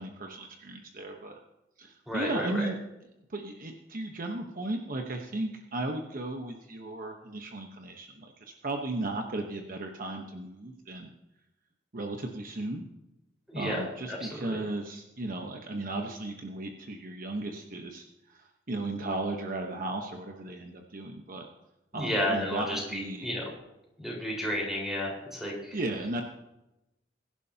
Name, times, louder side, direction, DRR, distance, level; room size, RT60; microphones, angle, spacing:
voice 1, 0.0-1.4 1.8-2.8 3.3-11.1 11.9-12.9 13.5-18.0 18.3-21.5 21.9-23.3 25.7-26.2, right 2 dB, 50° right, 3 dB, 1.1 m, -35 dB
voice 2, 2.1-2.5 13.5-13.8 14.1-14.6 21.9-23.5 24.0-25.8, equal, ahead, -3 dB, 4.6 m, -32 dB
22.0 x 11.0 x 2.9 m, 0.93 s
head